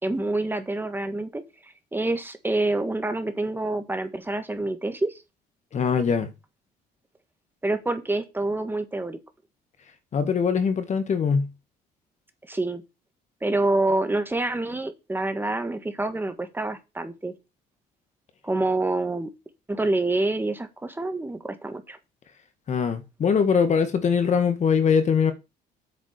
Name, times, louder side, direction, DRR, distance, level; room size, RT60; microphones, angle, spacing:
voice 1, 0.0-5.2 7.6-9.2 12.5-12.8 13.4-17.3 18.4-19.3 19.7-22.0, right 2 dB, 10° right, 1.6 m, -27 dB
voice 2, 5.7-6.3 10.1-11.5 22.7-25.3, left 6 dB, 45° left, 1.9 m, -22 dB
8.6 x 5.1 x 6.7 m
cardioid pair, 110°, 17 cm